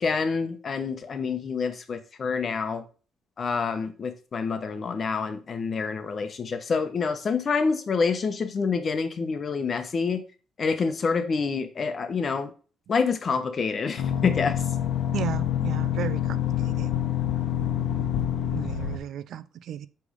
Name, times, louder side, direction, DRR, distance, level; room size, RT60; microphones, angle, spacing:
voice 1, 0.0-2.8 3.4-10.2 10.6-12.5 12.9-14.6, left 5 dB, 40° left, 1.0 m, -27 dB
sound 1, 14.0-19.0, left 10 dB, 80° left, 1.0 m, -27 dB
voice 2, 15.1-16.4 16.7-16.9 18.5-19.9, right 10 dB, 70° right, 0.5 m, -34 dB
8.2 x 3.5 x 5.0 m
cardioid pair, 115°, 0 cm